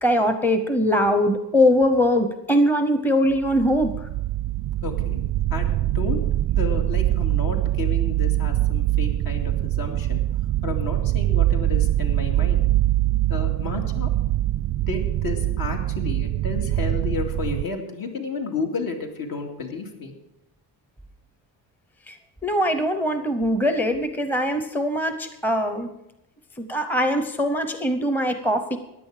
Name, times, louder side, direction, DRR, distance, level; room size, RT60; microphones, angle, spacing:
voice 1, 0.0-3.9 22.1-22.2 22.4-25.9 26.6-28.8, equal, 5° left, 8 dB, 0.8 m, -21 dB
sound 1, 3.3-17.6, right 14 dB, 55° right, 0.5 m, -23 dB
voice 2, 4.8-5.2 5.5-6.2 6.6-10.2 10.6-12.6 13.3-14.1 14.7-20.1, left 4 dB, 60° left, 2 dB, 2.5 m, -32 dB
15.5 x 10.5 x 5.0 m, 0.88 s
cardioid pair, 145°, 39 cm